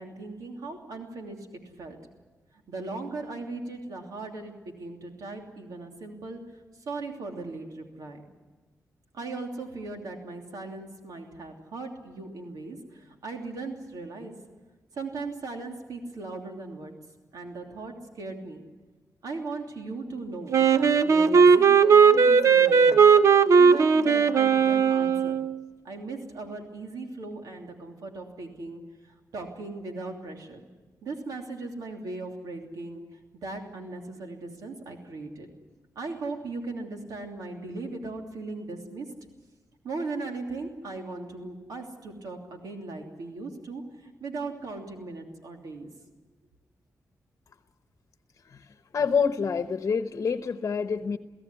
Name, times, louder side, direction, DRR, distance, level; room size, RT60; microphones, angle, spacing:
voice 1, 0.0-2.0 2.7-6.4 6.9-8.2 9.1-14.4 14.9-16.9 17.3-18.6 19.2-23.1 23.3-25.4 25.8-28.8 29.3-30.7 31.0-33.0 33.4-35.5 35.9-39.1 39.8-45.9, right 3 dB, 85° right, 2 dB, 3.0 m, -38 dB
Wind instrument woodwind instrument, 20.5-25.6, right 6 dB, 55° right, 0.9 m, -18 dB
voice 2, 48.9-51.2, left 6 dB, 55° left, 9 dB, 1.0 m, -27 dB
23.5 x 16.0 x 9.9 m, 1.2 s
wide cardioid pair, 110°, 6 cm